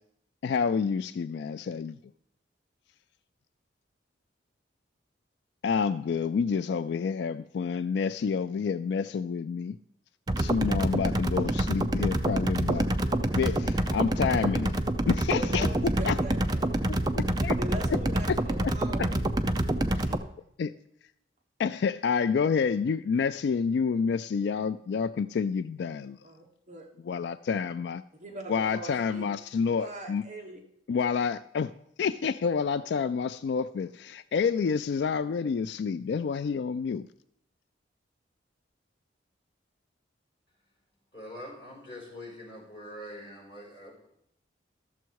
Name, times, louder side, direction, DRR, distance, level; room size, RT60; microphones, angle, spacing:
voice 1, 0.4-2.0 5.6-9.8 10.4-12.9 13.3-14.8 15.1-16.2 17.2-17.6 19.0-19.1 20.6-20.7 21.6-26.2 27.1-28.0 28.5-30.2 30.9-31.7 32.0-37.1, left 6 dB, 65° left, 13 dB, 0.3 m, -28 dB
sound 1, 10.3-20.2, right 1 dB, 20° right, 0.5 m, -27 dB
voice 2, 15.0-17.1 17.6-19.2 19.9-20.2 26.0-26.9 28.2-30.6, right 1 dB, 40° right, 2 dB, 1.2 m, -42 dB
voice 3, 41.1-44.1, left 1 dB, 25° left, -2 dB, 4.7 m, -44 dB
13.0 x 7.1 x 4.6 m, 0.74 s
head